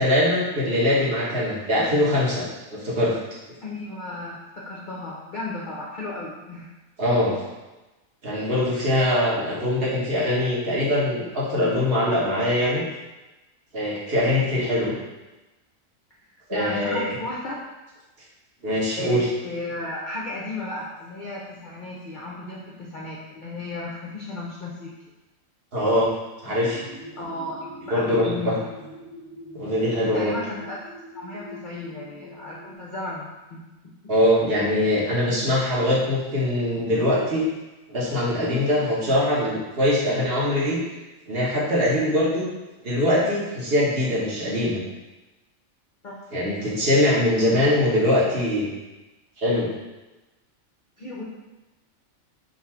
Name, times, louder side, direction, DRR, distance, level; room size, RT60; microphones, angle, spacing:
voice 1, 0.0-2.5 2.7-3.2 7.0-7.4 8.2-12.8 13.7-14.9 16.5-17.0 18.6-19.3 25.7-26.1 26.4-26.9 27.9-28.5 29.5-30.3 34.1-37.5 37.9-40.8 41.3-42.5 42.8-44.8 46.3-48.7 49.4-49.7, left 1 dB, 45° right, -7 dB, 1.2 m, -22 dB
voice 2, 3.6-6.7 16.5-17.6 19.0-24.9 27.2-28.7 30.0-30.8 31.1-34.1 38.5-38.8 46.0-46.2 51.0-51.2, left 2 dB, 55° left, -4 dB, 0.5 m, -34 dB
sound 1, 26.5-32.7, left 1 dB, 30° left, 0.8 m, -43 dB
4.0 x 2.5 x 4.3 m, 1.1 s
omnidirectional pair, 1.4 m